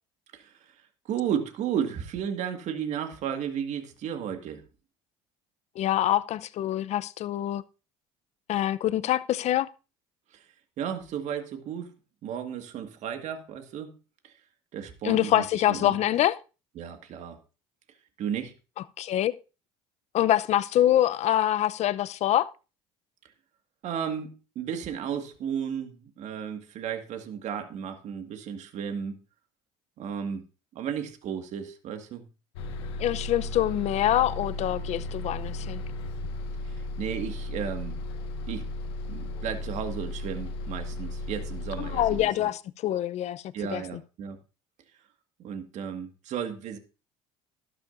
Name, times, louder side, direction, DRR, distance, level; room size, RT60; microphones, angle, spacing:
voice 1, 0.3-0.8 1.1-4.6 10.3-10.4 10.8-11.9 12.2-14.0 14.2-14.3 14.7-16.0 16.8-17.4 18.2-18.5 23.8-29.2 30.0-30.4 30.7-32.3 36.7-38.0 38.5-38.7 39.1-42.5 43.5-44.4 45.4-46.8, right 8 dB, 60° right, 1.9 m, -34 dB
voice 2, 5.8-7.6 8.5-9.7 15.0-16.4 19.0-19.3 20.1-22.5 33.0-35.8 41.8-43.4 43.7-44.0, left 13 dB, 55° left, 0.7 m, -25 dB
Bus, 32.6-42.2, left 2 dB, 85° left, 1.5 m, -35 dB
12.0 x 12.0 x 2.6 m
supercardioid pair, 75°, 14 cm